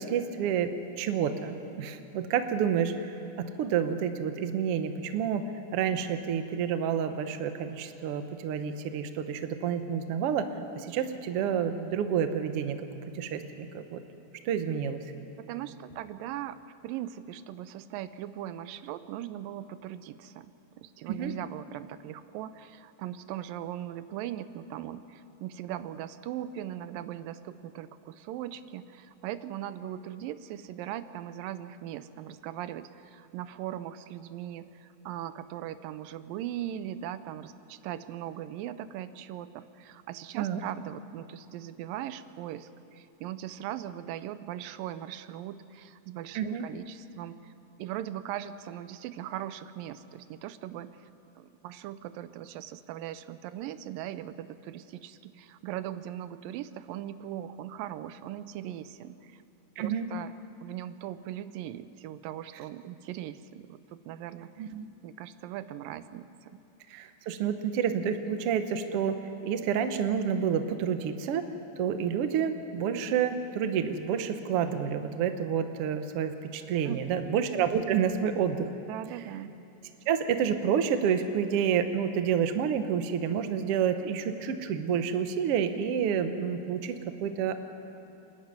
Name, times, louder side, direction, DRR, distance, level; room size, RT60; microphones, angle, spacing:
voice 1, 0.0-5.5 5.7-10.5 10.7-12.9 13.1-14.0 14.4-15.0 21.1-21.3 40.4-40.6 46.3-46.7 59.8-60.1 64.6-64.9 66.9-71.4 71.8-78.7 80.1-87.6, right 8 dB, 70° right, 8 dB, 1.5 m, -29 dB
voice 2, 15.4-16.6 16.8-47.5 47.8-51.0 51.4-59.4 59.8-60.3 60.6-64.7 65.0-66.6 76.8-77.4 78.9-79.5, right 12 dB, 90° right, 13 dB, 2.4 m, -39 dB
27.5 x 10.5 x 9.5 m, 3.0 s
omnidirectional pair, 3.9 m